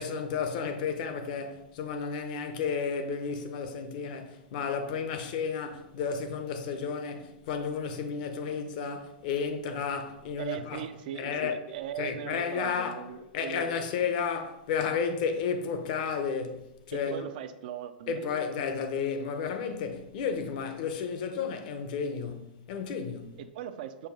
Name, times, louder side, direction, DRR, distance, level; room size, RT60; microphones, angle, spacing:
voice 1, 0.0-10.8 11.1-13.1 13.3-17.3 18.1-23.4, left 6 dB, 55° left, 0.9 m, -32 dB
voice 2, 10.4-13.7 16.9-18.2 23.4-24.1, right 10 dB, 55° right, 0.5 m, -39 dB
7.0 x 2.7 x 5.2 m
hypercardioid pair, 130°, 5 cm